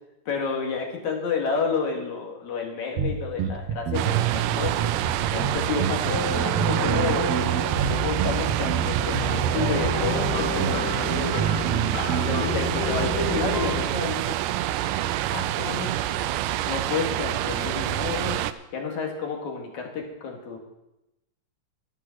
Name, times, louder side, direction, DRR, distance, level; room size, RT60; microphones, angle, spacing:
voice 1, 0.3-4.8 5.3-7.3 7.8-14.4 15.3-15.9 16.7-18.4 18.7-20.6, left 5 dB, 65° left, 1 dB, 3.4 m, -30 dB
sound 1, 3.0-12.6, right 7 dB, 70° right, 1.6 m, -28 dB
sound 2, 3.9-18.5, right 12 dB, 90° right, 2.2 m, -27 dB
sound 3, 6.1-13.9, left 4 dB, 35° left, 2.2 m, -32 dB
11.5 x 11.0 x 6.2 m, 0.92 s
omnidirectional pair, 3.6 m